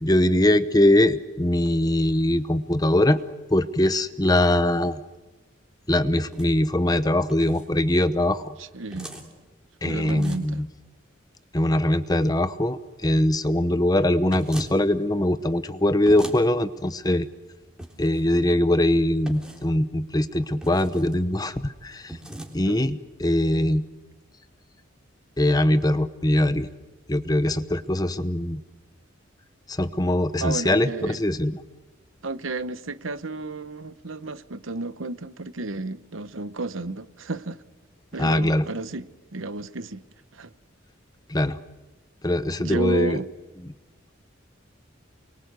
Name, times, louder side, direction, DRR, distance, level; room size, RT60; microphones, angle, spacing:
voice 1, 0.0-3.2 3.5-5.0 5.9-8.6 9.8-10.7 11.5-17.3 18.0-22.2 22.5-23.9 25.4-26.7 27.1-28.6 29.7-31.6 38.2-38.6 41.3-41.6 42.2-43.2, left 1 dB, 20° left, 0.9 m, -22 dB
sound 1, 6.2-6.5 7.3-7.7 8.9-9.3 10.1-10.6 14.3-14.8 16.1-16.4 17.8-18.2 19.3-19.7 20.6-21.1 22.1-22.5, right 1 dB, 5° right, 3.4 m, -39 dB
voice 2, 8.6-9.2 9.8-10.6 22.7-22.8 30.4-31.2 32.2-37.6 38.1-40.0 40.3-40.5 42.6-43.3, right 3 dB, 85° right, 1.0 m, -32 dB
29.0 x 23.0 x 8.2 m
head